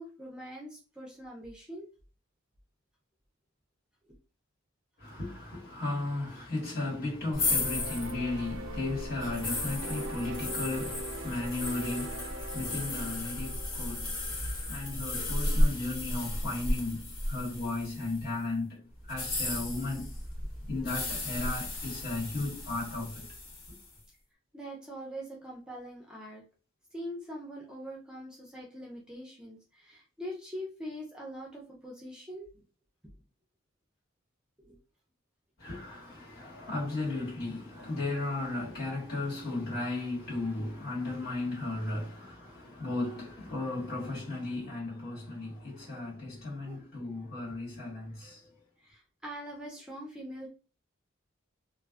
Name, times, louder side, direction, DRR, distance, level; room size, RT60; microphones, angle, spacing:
voice 1, 0.0-1.9 4.1-4.2 24.5-26.4 26.9-32.6 34.6-34.8 46.7-46.8 48.8-50.5, equal, 5° right, 0.4 m, -43 dB
voice 2, 5.0-14.3 14.7-20.1 20.7-23.3 35.6-48.6, left 2 dB, 50° left, 1.4 m, -35 dB
sound 1, 7.3-18.3 19.0-23.9, left 1 dB, 80° left, 0.9 m, -34 dB
sound 2, 7.4-14.9, right 2 dB, 75° right, 0.3 m, -42 dB
2.4 x 2.3 x 2.3 m
head